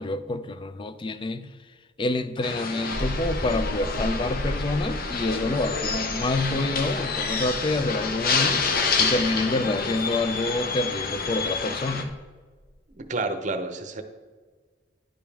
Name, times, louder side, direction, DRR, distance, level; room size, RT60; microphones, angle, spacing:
voice 1, 0.0-1.5 2.0-8.7 9.0-12.1, left 2 dB, 25° left, 0.4 m, -27 dB
sound 1, 2.4-12.0, left 4 dB, 50° left, 0.7 m, -28 dB
sound 2, 2.9-13.0, equal, 5° left, 2.3 m, -36 dB
voice 2, 13.0-14.0, right 3 dB, 40° right, 0.7 m, -29 dB
11.0 x 5.2 x 3.4 m
head